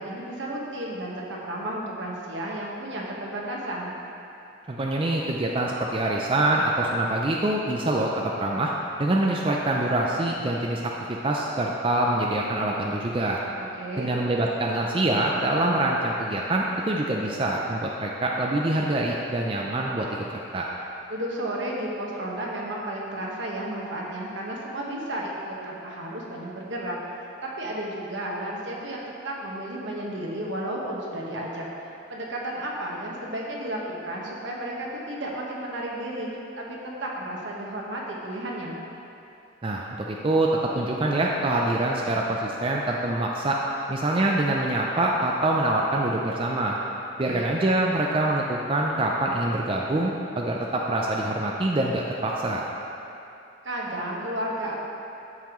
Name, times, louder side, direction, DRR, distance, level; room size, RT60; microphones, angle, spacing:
voice 1, 0.0-3.9 13.6-14.1 21.1-36.3 36.6-38.7 47.2-47.5 53.6-54.8, right 1 dB, 75° right, -3 dB, 1.4 m, -33 dB
voice 2, 4.7-8.7 9.0-13.4 14.0-20.1 20.5-20.7 39.6-43.6 43.9-46.8 47.2-52.7, right 1 dB, 30° right, -2 dB, 0.4 m, -25 dB
13.0 x 5.7 x 3.1 m, 2.7 s
head